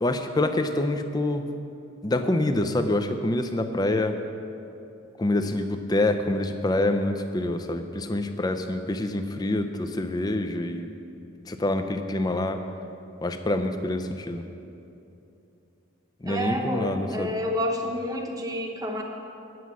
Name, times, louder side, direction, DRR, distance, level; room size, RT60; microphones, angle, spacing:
voice 1, 0.0-1.5 2.0-4.2 5.2-10.9 11.5-12.6 13.2-14.5 16.2-17.4, left 1 dB, 20° left, 7 dB, 0.5 m, -26 dB
voice 2, 16.3-19.0, equal, 20° right, 2 dB, 0.9 m, -29 dB
9.5 x 6.1 x 8.2 m, 2.8 s
head